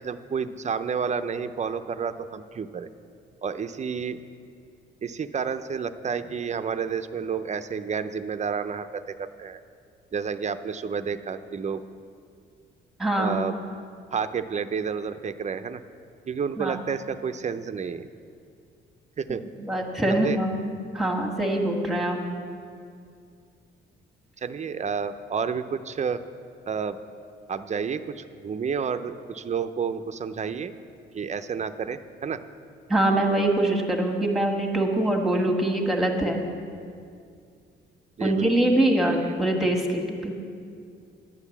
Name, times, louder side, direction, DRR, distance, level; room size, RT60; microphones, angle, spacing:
voice 1, 0.0-2.9 3.4-4.2 5.0-9.6 10.1-11.8 13.2-13.6 14.1-15.8 16.3-18.1 19.2-19.4 20.1-20.4 24.4-26.2 26.7-27.0 27.5-30.7 31.1-32.4 38.2-38.5, right 6 dB, 35° right, 11 dB, 0.5 m, -30 dB
voice 2, 13.0-13.4 16.6-16.8 19.3-19.4 19.6-20.6 20.9-22.2 32.9-36.4 38.2-40.3, right 1 dB, ahead, 2 dB, 1.7 m, -24 dB
11.0 x 8.1 x 7.2 m, 2.3 s
cardioid pair, 90°, 20 cm